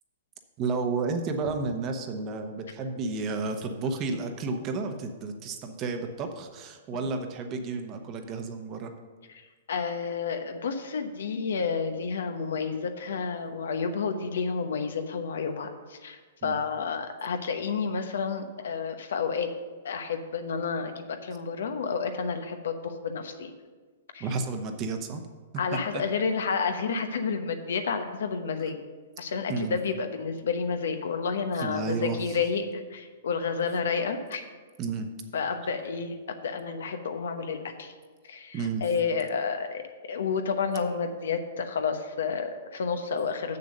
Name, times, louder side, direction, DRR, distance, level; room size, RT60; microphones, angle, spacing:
voice 1, 0.6-8.9 16.4-16.5 24.2-25.2 25.7-25.8 29.5-29.7 31.6-32.4 34.8-35.1 38.5-38.8, right 4 dB, 35° right, 5 dB, 1.1 m, -31 dB
voice 2, 9.7-19.5 19.8-23.5 24.1-24.3 25.6-28.8 29.2-34.4 35.3-37.9 38.2-43.6, left 5 dB, 75° left, 7 dB, 1.0 m, -30 dB
7.0 x 6.7 x 6.6 m, 1.4 s
hypercardioid pair, 130°, 0 cm